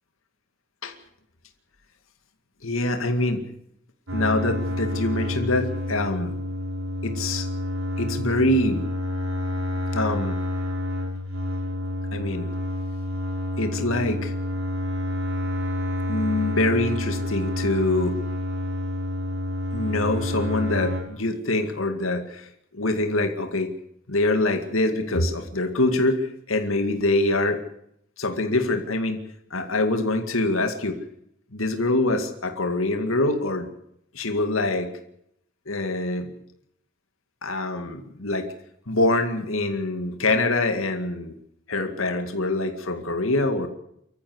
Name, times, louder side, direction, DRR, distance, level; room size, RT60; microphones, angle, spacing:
voice 1, 2.6-3.4 4.1-6.4 7.0-7.5 8.0-8.8 9.9-10.4 12.1-12.5 13.6-14.3 16.1-18.2 19.7-22.5 22.7-23.7 24.1-27.6 28.2-29.2 29.5-31.0 31.5-33.7 34.1-34.9 35.7-36.3 37.4-38.5 38.9-41.3 41.7-43.7, left 2 dB, 90° left, 6 dB, 2.2 m, -24 dB
sound 1, 4.1-21.0, left 1 dB, 80° right, 6.0 m, -29 dB
25.0 x 14.5 x 8.0 m, 0.75 s
head